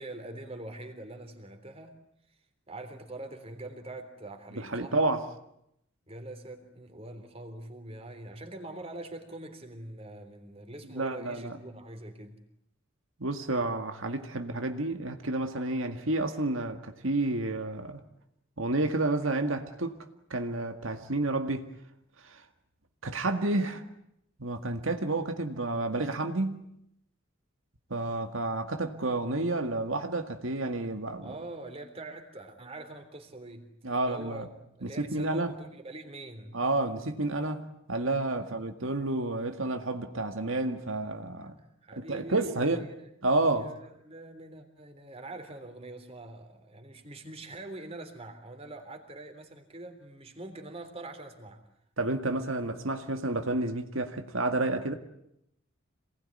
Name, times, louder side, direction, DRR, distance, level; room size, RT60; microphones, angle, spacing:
voice 1, 0.0-1.9 2.7-4.9 6.1-12.4 31.2-34.5 34.8-36.6 38.4-38.7 41.6-43.1 43.6-51.6, right 2 dB, 30° right, 3.5 m, -44 dB
voice 2, 4.6-5.2 11.0-11.6 13.2-18.0 18.6-20.0 20.3-21.7 22.3-22.4 23.0-23.8 24.4-26.7 27.9-31.3 33.8-34.5 34.8-35.5 36.5-41.6 42.0-42.9 43.2-43.7 52.0-54.9, right 2 dB, 70° right, 1.9 m, -30 dB
27.0 x 19.5 x 9.8 m
head